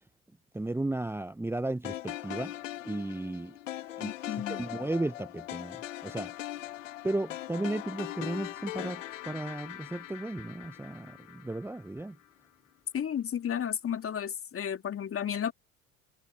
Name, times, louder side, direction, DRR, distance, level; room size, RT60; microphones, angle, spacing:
voice 1, 0.5-2.5 2.8-3.5 4.0-5.8 6.0-6.3 7.0-12.2, right 2 dB, 5° right, 1.2 m, -34 dB
sound 1, 1.8-12.1, left 14 dB, 75° left, 2.7 m, -41 dB
voice 2, 4.0-4.6 12.9-15.5, left 9 dB, 35° left, 2.8 m, -33 dB
figure-of-eight pair, 65°, 38 cm